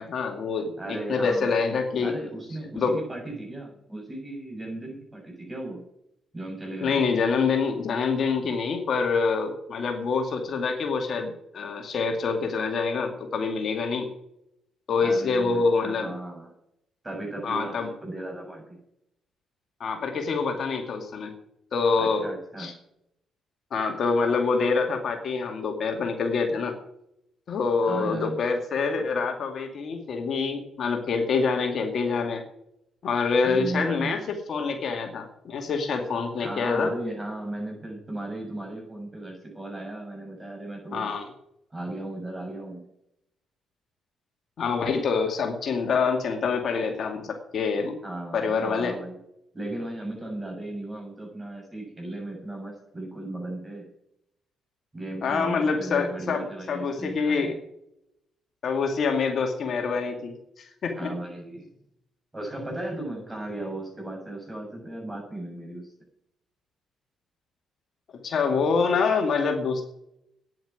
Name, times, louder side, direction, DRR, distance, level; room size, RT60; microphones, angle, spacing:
voice 1, 0.0-2.1 2.7-3.0 6.8-14.1 14.9-16.1 17.4-17.9 19.8-21.3 21.7-22.3 22.6-22.7 23.7-26.7 27.5-32.4 33.0-36.9 40.9-41.3 44.6-48.0 48.3-49.0 55.2-57.6 58.6-61.1 68.2-69.8, left 5 dB, 55° left, 3 dB, 2.4 m, -26 dB
voice 2, 0.8-1.5 2.0-5.8 6.3-7.0 15.0-16.5 17.0-18.8 22.0-22.7 27.8-28.4 33.4-34.2 36.4-41.1 41.7-42.8 48.0-49.2 49.5-53.9 54.9-57.6 61.0-61.7 62.3-65.9, right 1 dB, 15° right, -1 dB, 7.1 m, -36 dB
9.8 x 9.1 x 8.9 m, 0.79 s
cardioid pair, 90°, 0 cm